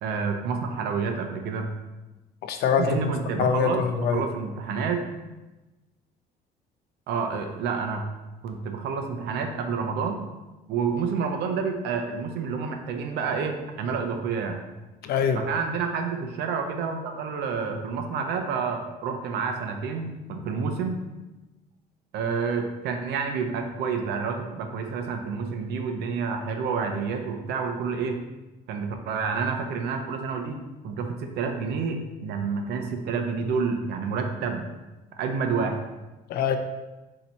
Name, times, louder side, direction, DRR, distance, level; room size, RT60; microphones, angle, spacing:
voice 1, 0.0-1.7 2.8-5.0 7.1-8.0 8.4-10.2 10.7-14.6 15.4-21.0 22.1-28.2 28.7-30.6 30.8-34.7 35.2-35.8, right 5 dB, 80° right, 5 dB, 0.6 m, -29 dB
voice 2, 2.4-3.1 3.4-4.3 15.0-15.4 36.3-36.6, left 7 dB, 70° left, 7 dB, 0.5 m, -24 dB
4.1 x 2.8 x 4.2 m, 1.1 s
cardioid pair, 110°, 17 cm